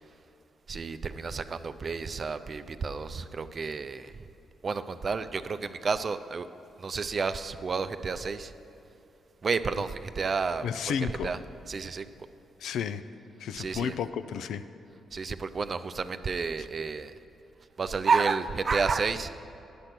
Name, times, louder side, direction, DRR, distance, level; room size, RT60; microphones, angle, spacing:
voice 1, 0.7-4.1 4.6-6.5 6.8-8.5 9.4-10.7 11.0-11.4 11.7-12.1 13.6-14.0 15.1-17.1 17.8-19.3, right 5 dB, 50° right, 11 dB, 0.4 m, -30 dB
voice 2, 10.6-11.3 12.6-13.0 13.4-14.6, left 8 dB, 75° left, 12 dB, 0.3 m, -32 dB
10.0 x 6.5 x 5.9 m, 2.9 s
hypercardioid pair, 45°, 0 cm